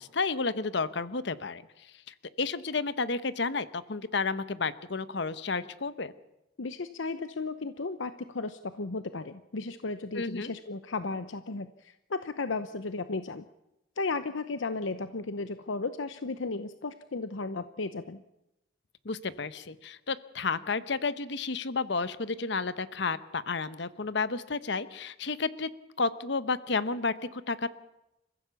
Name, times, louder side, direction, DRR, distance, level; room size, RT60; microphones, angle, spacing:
voice 1, 0.0-1.6 2.1-6.1 10.1-10.5 19.0-25.7 26.0-27.7, left 4 dB, 65° left, 14 dB, 1.0 m, -31 dB
voice 2, 6.6-13.4 14.0-18.2, left 3 dB, 85° left, 11 dB, 0.8 m, -34 dB
29.0 x 15.0 x 7.1 m, 0.93 s
head